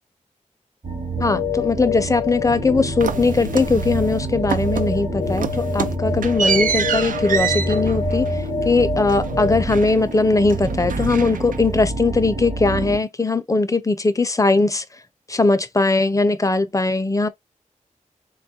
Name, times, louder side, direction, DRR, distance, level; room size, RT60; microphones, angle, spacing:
sound 1, 0.8-13.0, right 3 dB, 40° right, 0.9 m, -29 dB
sound 2, 1.2-9.7, left 4 dB, 85° left, 0.7 m, -27 dB
voice 1, 1.2-14.8 15.3-17.3, left 3 dB, 25° left, 0.5 m, -20 dB
sound 3, 3.0-4.2 4.5-5.0 5.3-10.2 10.5-11.8, right 6 dB, 85° right, 0.4 m, -27 dB
4.0 x 2.4 x 2.6 m
wide cardioid pair, 100°, 13 cm